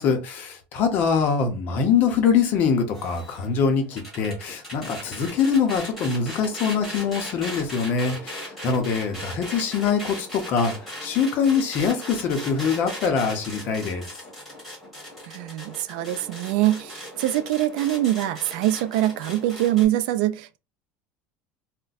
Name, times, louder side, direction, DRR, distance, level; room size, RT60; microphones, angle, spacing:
voice 1, 0.0-10.7 11.0-14.0, left 6 dB, 35° left, 0.6 m, -23 dB
sound 1, 2.9-19.8, equal, ahead, 1.3 m, -38 dB
voice 2, 15.3-20.6, right 14 dB, 65° right, 0.3 m, -24 dB
2.5 x 2.1 x 3.9 m
cardioid pair, 180°, 5 cm